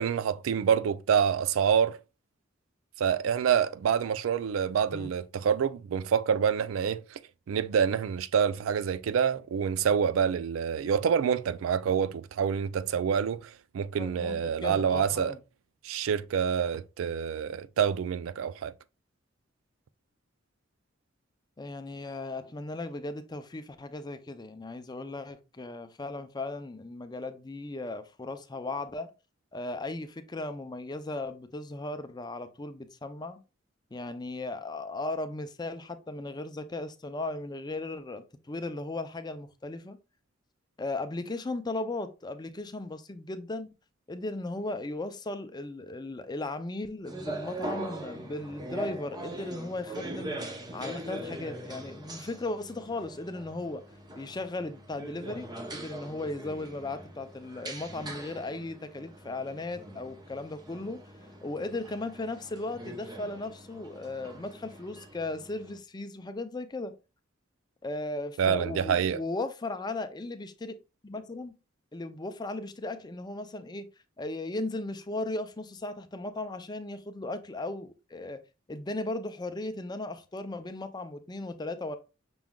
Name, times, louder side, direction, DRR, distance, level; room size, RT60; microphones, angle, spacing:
voice 1, 0.0-2.0 3.0-7.2 7.5-15.3 15.8-18.7 68.4-69.2, right 7 dB, 90° right, 0.3 m, -27 dB
voice 2, 14.0-15.4 21.6-29.1 29.5-33.4 33.9-40.0 40.8-43.7 44.1-50.3 50.7-53.8 54.2-61.0 61.4-66.9 67.8-70.7 71.0-71.5 71.9-73.9 74.2-78.4 78.7-82.0, left 2 dB, 20° left, 0.5 m, -36 dB
sound 1, 47.1-65.8, right 1 dB, 20° right, 0.8 m, -42 dB
6.0 x 3.6 x 2.3 m
head